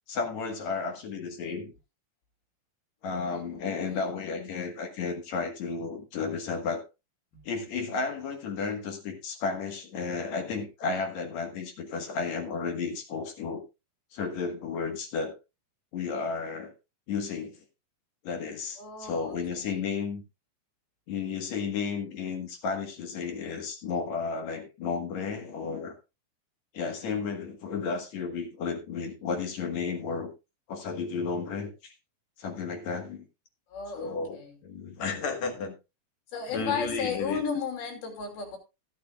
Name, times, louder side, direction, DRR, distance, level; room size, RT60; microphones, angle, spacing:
voice 1, 0.1-1.7 3.0-6.8 7.5-13.6 14.1-15.4 15.9-16.7 17.1-17.6 18.2-20.2 21.1-26.0 26.7-30.3 30.7-31.9 32.4-33.2 33.9-35.8 36.5-37.4, left 5 dB, 60° left, 2.3 m, -33 dB
voice 2, 3.2-4.1 7.3-7.4 18.8-19.8 33.7-34.6 36.3-38.6, left 6 dB, 80° left, 4.6 m, -35 dB
16.0 x 9.4 x 2.3 m
omnidirectional pair, 4.3 m